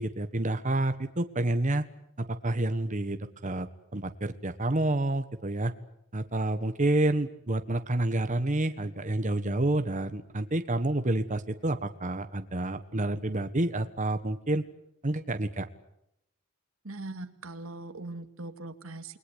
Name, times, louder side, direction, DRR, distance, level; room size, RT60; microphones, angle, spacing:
voice 1, 0.0-1.8 2.2-5.7 6.1-14.6 15.0-15.7, right 1 dB, 35° right, 9 dB, 1.3 m, -29 dB
voice 2, 16.8-19.2, right 2 dB, 85° right, 9 dB, 2.2 m, -40 dB
29.0 x 21.5 x 8.1 m, 0.79 s
head